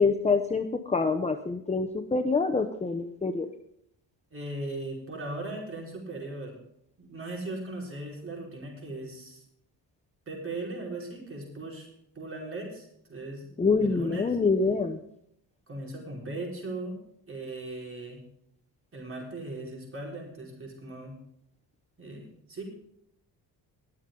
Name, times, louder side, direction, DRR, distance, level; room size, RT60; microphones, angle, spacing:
voice 1, 0.0-3.5 13.6-15.0, left 4 dB, 15° left, 6 dB, 0.8 m, -26 dB
voice 2, 4.3-6.6 7.0-9.4 10.3-11.9 12.1-13.5 13.8-14.4 15.7-17.0 17.3-18.2 18.9-21.1 22.0-22.6, right 2 dB, 30° right, -1 dB, 4.9 m, -38 dB
21.5 x 7.2 x 3.8 m, 0.72 s
cardioid pair, 130°, 41 cm